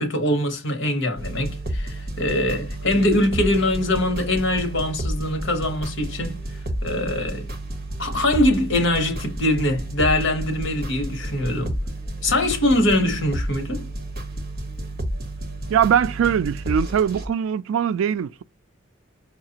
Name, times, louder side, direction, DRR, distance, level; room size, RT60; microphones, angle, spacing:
voice 1, 0.0-6.5 6.8-7.5 8.0-11.8 12.2-13.9, left 1 dB, 65° left, 1.2 m, -23 dB
sound 1, 1.2-17.3, right 1 dB, 50° right, 1.0 m, -31 dB
voice 2, 15.7-18.4, right 8 dB, 85° right, 0.3 m, -21 dB
5.7 x 2.4 x 2.8 m
head